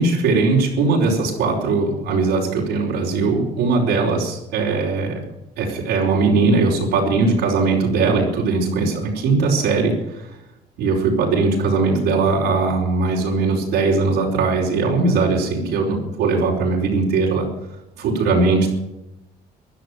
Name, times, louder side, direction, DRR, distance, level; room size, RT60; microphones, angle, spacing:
voice 1, 0.0-5.2 5.6-10.3 10.8-17.5 18.0-18.7, right 3 dB, 85° right, -3 dB, 4.9 m, -19 dB
16.0 x 11.0 x 7.7 m, 0.90 s
cardioid pair, 110°, 17 cm